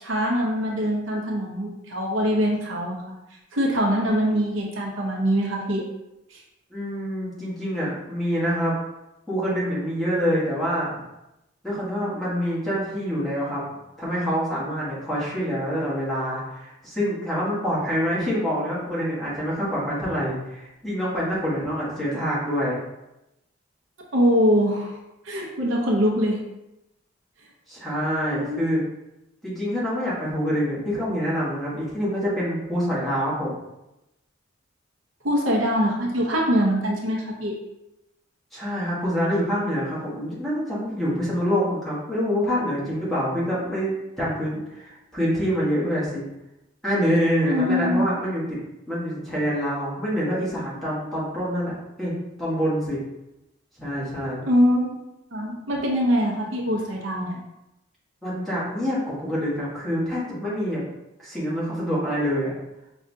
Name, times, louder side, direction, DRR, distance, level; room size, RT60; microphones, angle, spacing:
voice 1, 0.0-3.2 3.5-5.8 6.3-6.4 24.1-25.0 25.2-26.4 28.3-28.7 35.2-37.5 47.5-48.0 54.5-54.9 55.3-57.4, equal, 75° right, -1 dB, 0.7 m, -23 dB
voice 2, 6.7-8.8 9.3-11.0 11.6-13.6 14.0-22.8 27.7-28.8 29.4-33.6 38.5-46.2 46.8-48.6 48.9-51.7 52.0-52.1 52.4-53.0 53.8-54.5 58.2-60.8 61.2-62.5, equal, ahead, -9 dB, 1.3 m, -26 dB
5.1 x 2.4 x 2.7 m, 0.93 s
head